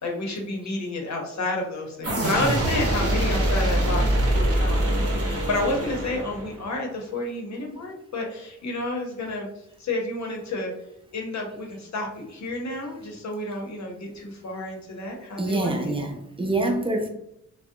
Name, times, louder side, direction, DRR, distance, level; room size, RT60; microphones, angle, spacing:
voice 1, 0.0-4.1 4.3-9.5 9.8-10.7 11.1-15.9, left 2 dB, 60° left, 0.7 m, -30 dB
sound 1, 2.0-6.7, right 1 dB, 45° right, 0.9 m, -24 dB
voice 2, 15.4-17.1, right 2 dB, 15° right, 0.4 m, -26 dB
2.4 x 2.1 x 2.6 m
cardioid pair, 65°, 32 cm